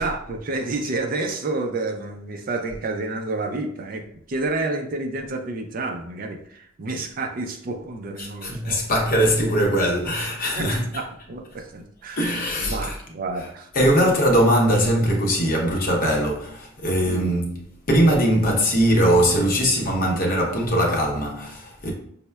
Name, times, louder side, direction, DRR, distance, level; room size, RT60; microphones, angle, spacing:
voice 1, 0.0-8.8 10.6-12.3 12.6-13.7 17.0-17.3, right 2 dB, 45° right, 0.4 m, -29 dB
voice 2, 8.2-10.9 12.2-13.0 13.4-13.5 13.7-21.9, equal, 45° left, 0.7 m, -21 dB
5.4 x 2.1 x 2.2 m
head